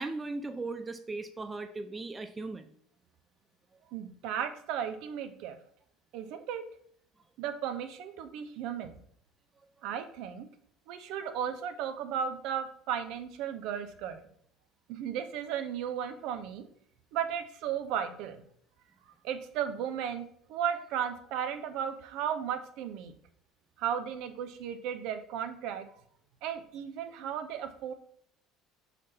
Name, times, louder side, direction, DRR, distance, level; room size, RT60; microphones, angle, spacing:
voice 1, 0.0-2.7, right 3 dB, 20° right, 9 dB, 0.5 m, -37 dB
voice 2, 3.9-5.6 6.1-6.6 7.4-8.9 9.8-10.5 10.9-14.2 14.9-16.6 17.1-18.4 19.2-23.1 23.8-25.9 26.4-27.9, right 8 dB, 60° right, 8 dB, 0.7 m, -35 dB
6.2 x 4.2 x 4.1 m, 0.65 s
figure-of-eight pair, 65°, 0 cm